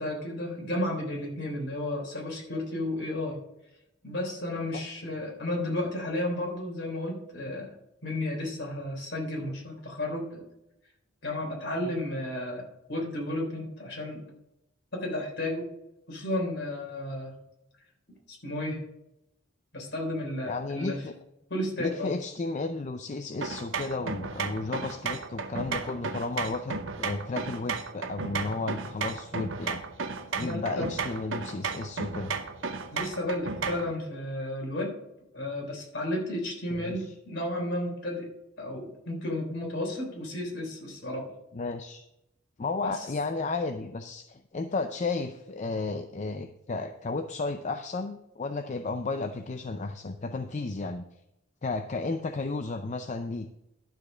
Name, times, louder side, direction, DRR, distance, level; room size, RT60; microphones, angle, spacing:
voice 1, 0.0-3.4 4.0-7.7 8.0-10.4 11.2-14.2 14.9-15.7 16.1-17.3 18.3-18.9 19.7-21.0 21.5-22.1 30.3-30.9 32.9-34.9 35.3-38.3 38.6-41.3 42.8-43.1, left 1 dB, 60° left, 0 dB, 3.6 m, -33 dB
voice 2, 20.5-21.1 21.8-29.8 30.4-32.4 36.8-37.1 41.5-42.1 42.6-51.0 51.6-53.5, left 3 dB, 35° left, 7 dB, 0.5 m, -33 dB
sound 1, 23.4-33.9, right 5 dB, 70° right, 0.8 m, -34 dB
12.0 x 5.0 x 6.1 m, 0.86 s
head